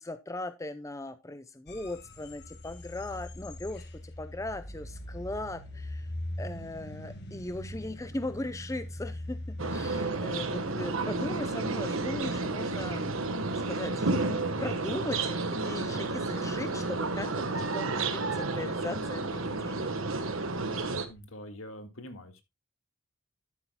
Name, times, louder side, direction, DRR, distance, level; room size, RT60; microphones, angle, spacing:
voice 1, 0.0-6.1 6.4-14.1 14.6-20.4, left 2 dB, 15° left, 11 dB, 0.5 m, -39 dB
sound 1, 1.7-21.2, left 1 dB, 50° left, 1.7 m, -44 dB
sound 2, 9.6-21.0, right 3 dB, 75° right, 1.3 m, -31 dB
voice 2, 21.0-22.4, left 1 dB, 75° left, 8 dB, 1.8 m, -45 dB
12.0 x 9.8 x 2.2 m, 0.21 s
head